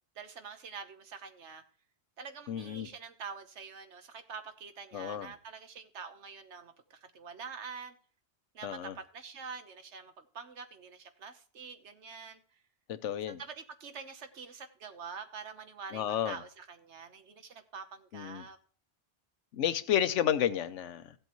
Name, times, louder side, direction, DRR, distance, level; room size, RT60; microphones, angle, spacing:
voice 1, 0.1-1.6 2.2-8.0 8.5-12.4 13.3-18.6, right 5 dB, 75° right, 9 dB, 1.3 m, -46 dB
voice 2, 2.5-2.9 4.9-5.3 8.6-8.9 12.9-13.4 15.9-16.4 18.1-18.4 19.5-21.1, left 10 dB, 90° left, 14 dB, 1.0 m, -31 dB
15.5 x 7.8 x 3.0 m, 0.41 s
omnidirectional pair, 1.2 m